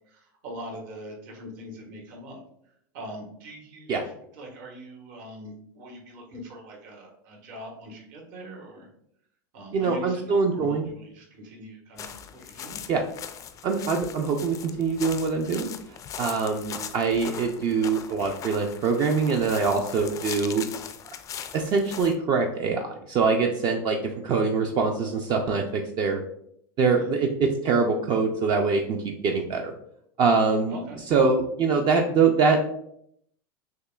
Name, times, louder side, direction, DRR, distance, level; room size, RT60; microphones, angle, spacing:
voice 1, 0.1-2.4 2.9-4.0 4.3-8.9 9.5-12.8 26.9-27.1 30.7-31.0, equal, 60° right, 0 dB, 1.3 m, -42 dB
voice 2, 9.7-10.9 12.9-13.0 13.6-15.7 16.2-20.6 21.5-24.0 24.2-26.2 26.8-29.7 30.2-30.7 31.1-32.6, right 4 dB, 40° right, 3 dB, 0.4 m, -24 dB
sound 1, 12.0-22.2, left 8 dB, 30° left, 0.3 m, -40 dB
6.3 x 2.2 x 2.3 m, 0.72 s
supercardioid pair, 120°, 11 cm